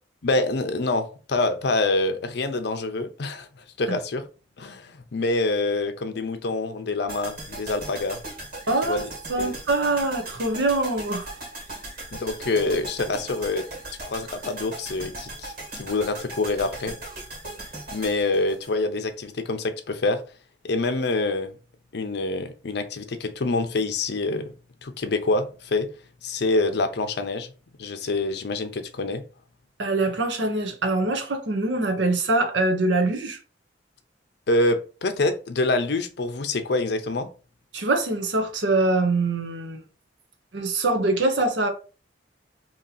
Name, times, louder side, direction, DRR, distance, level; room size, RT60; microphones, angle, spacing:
voice 1, 0.2-3.5 3.8-4.2 4.6-8.2 8.8-9.0 9.4-9.6 12.1-13.7 14.1-17.0 17.9-20.2 20.6-21.5 21.9-24.5 24.8-25.9 26.2-27.5 27.8-29.2 34.5-37.3, left 2 dB, 65° left, 0.6 m, -26 dB
sound 1, 7.1-19.3 19.5-19.6, right 2 dB, 55° right, 1.8 m, -38 dB
voice 2, 8.7-11.3 29.8-33.4 37.7-39.8 40.5-41.7, right 2 dB, 75° right, 0.8 m, -24 dB
2.9 x 2.7 x 3.9 m
head